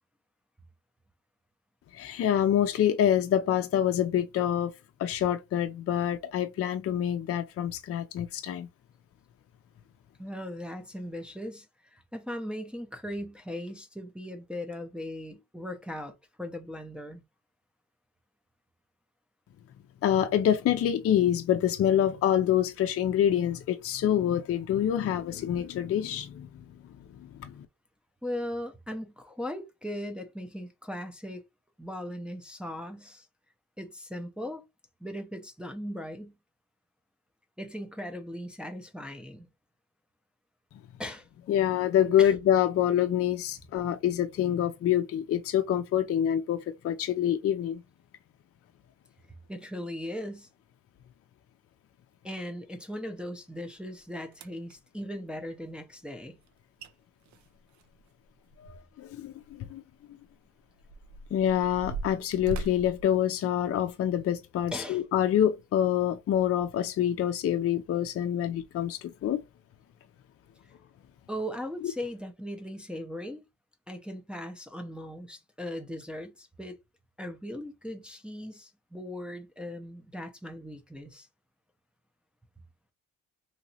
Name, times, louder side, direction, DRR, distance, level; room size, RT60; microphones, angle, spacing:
voice 1, 1.9-4.7 5.0-8.7 20.0-26.6 27.2-27.7 41.5-47.8 59.0-59.8 61.3-69.4, left 10 dB, 50° left, 0.5 m, -26 dB
voice 2, 10.2-17.2 28.2-31.4 31.8-33.3 33.8-34.6 35.0-36.3 37.6-39.5 41.0-41.3 42.2-42.3 49.5-50.5 52.2-56.4 64.7-65.0 71.3-73.4 73.9-76.8 77.2-81.3, equal, 5° right, 0.5 m, -38 dB
sound 1, 53.9-54.0 54.3-54.8 56.5-56.6 56.8-56.9 57.3-59.1 59.4-59.5 60.2-64.0 64.6-64.8 65.4-65.5, right 3 dB, 70° right, 0.5 m, -40 dB
2.8 x 2.8 x 2.7 m
cardioid pair, 90°, 30 cm